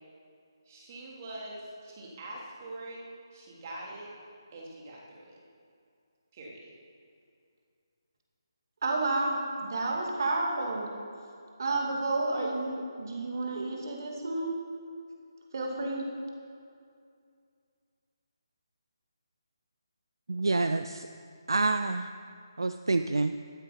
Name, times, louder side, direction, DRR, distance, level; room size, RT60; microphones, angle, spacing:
voice 1, 0.7-3.0 3.3-4.2 4.5-5.4 6.3-6.7, right 1 dB, 35° right, -3 dB, 3.0 m, -44 dB
voice 2, 8.8-11.0 11.6-14.6 15.5-16.0, right 2 dB, 50° right, 0 dB, 2.4 m, -30 dB
voice 3, 20.3-21.1 21.5-22.1 22.6-23.3, right 3 dB, 70° right, 9 dB, 0.5 m, -27 dB
13.0 x 9.0 x 5.3 m, 2.4 s
figure-of-eight pair, 150°, 2 cm